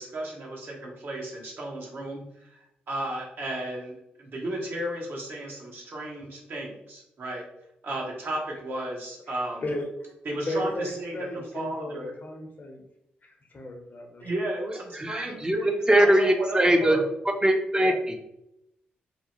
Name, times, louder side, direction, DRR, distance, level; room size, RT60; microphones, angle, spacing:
voice 1, 0.0-7.4 7.8-9.7 10.2-12.1 14.2-17.0 17.8-17.9, right 1 dB, 60° right, -1 dB, 0.8 m, -34 dB
voice 2, 9.3-9.9 10.5-12.8 13.2-14.3 15.3-15.4, left 1 dB, 50° left, 2 dB, 0.7 m, -35 dB
voice 3, 15.0-15.6 15.9-17.0 17.4-18.1, right 1 dB, 20° right, 4 dB, 0.5 m, -21 dB
2.8 x 2.0 x 2.9 m, 0.83 s
supercardioid pair, 50°, 4 cm